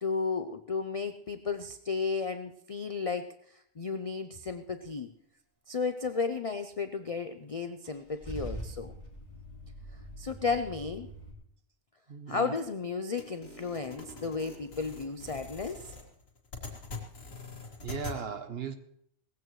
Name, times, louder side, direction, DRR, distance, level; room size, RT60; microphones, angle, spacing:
voice 1, 0.0-5.1 5.7-8.9 10.2-11.1 12.3-15.9, left 4 dB, 45° left, 8 dB, 0.4 m, -33 dB
Car / Engine starting / Idling, 7.8-11.3, right 1 dB, 25° left, 3.2 m, -43 dB
voice 2, 12.1-12.5 17.8-18.7, right 6 dB, 50° right, 9 dB, 1.1 m, -37 dB
sound 1, 13.2-18.2, left 3 dB, 80° left, 2.5 m, -43 dB
18.5 x 15.0 x 3.1 m, 0.70 s
omnidirectional pair, 1.4 m